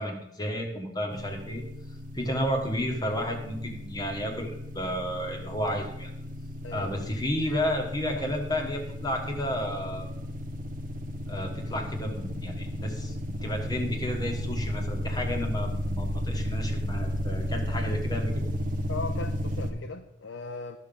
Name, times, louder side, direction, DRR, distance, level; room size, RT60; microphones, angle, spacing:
voice 1, 0.0-1.6 2.1-6.1 6.7-10.1 11.3-18.5, equal, 20° left, 2 dB, 1.2 m, -32 dB
sound 1, 1.1-19.7, equal, 45° right, 0.9 m, -34 dB
voice 2, 6.6-7.2 8.1-8.4 18.9-20.8, left 3 dB, 80° left, 5 dB, 0.6 m, -38 dB
12.0 x 6.3 x 5.3 m, 0.80 s
head